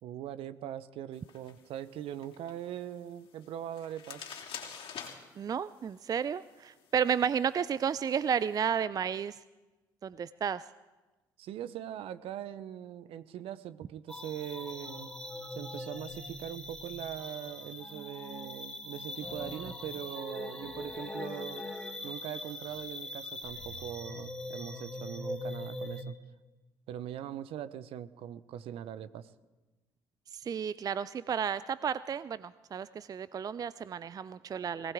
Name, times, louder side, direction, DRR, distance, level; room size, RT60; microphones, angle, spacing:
voice 1, 0.0-4.3 11.4-15.1 15.5-21.7 22.0-26.2 26.9-29.3, right 10 dB, 65° right, 14 dB, 0.8 m, -41 dB
sound 1, 1.1-8.5, left 7 dB, 60° left, 3.2 m, -50 dB
voice 2, 5.4-9.4 10.0-10.6 30.3-34.9, right 7 dB, 35° right, 17 dB, 0.4 m, -32 dB
sound 2, 14.1-26.0, left 1 dB, 5° left, 2.5 m, -41 dB
20.0 x 18.5 x 3.6 m, 1.2 s
hypercardioid pair, 55°, 11 cm